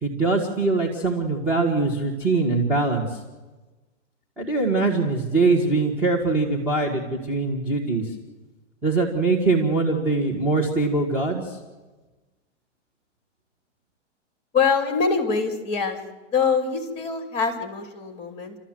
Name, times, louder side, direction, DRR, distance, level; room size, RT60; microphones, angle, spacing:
voice 1, 0.0-3.2 4.4-8.0 8.8-11.6, right 3 dB, 5° right, -3 dB, 1.7 m, -22 dB
voice 2, 14.5-16.0 16.3-18.6, left 5 dB, 15° left, 5 dB, 2.7 m, -24 dB
29.5 x 13.0 x 7.7 m, 1.2 s
hypercardioid pair, 160°, 37 cm